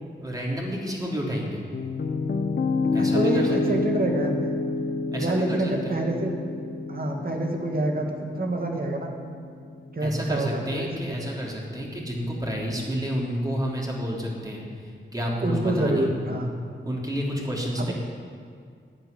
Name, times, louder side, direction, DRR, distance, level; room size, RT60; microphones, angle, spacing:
voice 1, 0.2-1.6 2.9-3.8 5.1-6.0 10.0-14.6 15.1-16.0 16.8-17.9, equal, 20° right, -3 dB, 3.2 m, -30 dB
Piano, 1.7-9.8, left 3 dB, 55° left, 0.8 m, -28 dB
voice 2, 3.0-4.3 5.2-6.3 6.9-9.1 9.9-11.1 15.4-16.5 17.8-17.9, right 1 dB, 50° right, 2 dB, 1.9 m, -27 dB
11.0 x 9.6 x 9.2 m, 2.1 s
wide cardioid pair, 85°, 20 cm